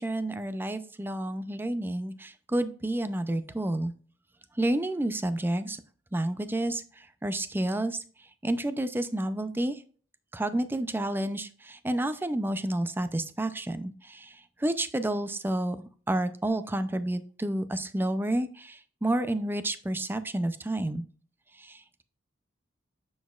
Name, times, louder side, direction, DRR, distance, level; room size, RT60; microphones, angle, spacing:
voice 1, 0.0-3.9 4.6-5.8 6.1-8.0 8.4-9.8 10.3-15.8 16.1-21.0 21.6-22.0, right 1 dB, 10° right, 11 dB, 0.4 m, -30 dB
7.0 x 6.2 x 2.4 m, 0.41 s
head